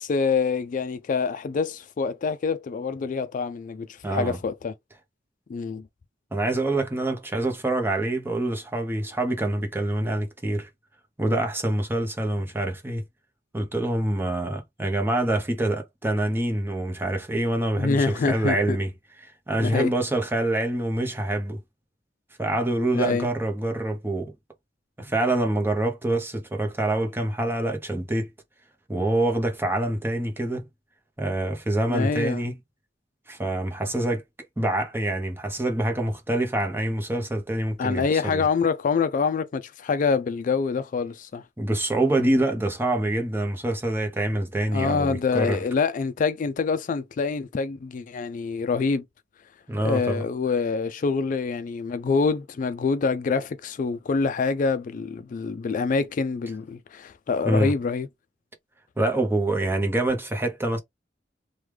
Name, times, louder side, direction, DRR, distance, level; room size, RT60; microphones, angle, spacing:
voice 1, 0.0-4.7 5.5-5.9 17.8-18.8 19.6-19.9 22.9-23.3 31.9-32.5 37.8-41.4 44.7-49.0 49.8-58.1, left 5 dB, 45° left, 0.3 m, -26 dB
voice 2, 4.0-4.4 6.3-10.7 11.2-13.0 13.5-18.9 19.2-21.6 22.4-24.3 25.0-28.3 28.9-30.7 31.2-32.6 33.3-34.2 34.6-38.4 41.6-45.6 49.7-50.2 57.4-57.7 59.0-60.8, right 1 dB, 10° right, 0.7 m, -26 dB
3.2 x 2.2 x 3.2 m
head